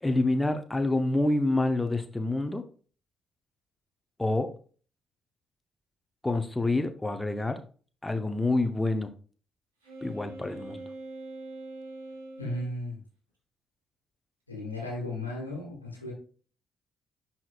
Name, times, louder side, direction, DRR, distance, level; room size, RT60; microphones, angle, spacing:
voice 1, 0.0-2.6 4.2-4.5 6.2-7.6 8.0-9.1 10.0-10.8, left 2 dB, 15° left, 7 dB, 0.9 m, -27 dB
Wind instrument woodwind instrument, 9.8-12.7, right 2 dB, 75° right, 1.9 m, -43 dB
voice 2, 12.4-13.0 14.5-16.1, left 1 dB, 85° left, -2 dB, 1.7 m, -35 dB
10.0 x 4.4 x 2.4 m, 0.40 s
figure-of-eight pair, 40°, 0 cm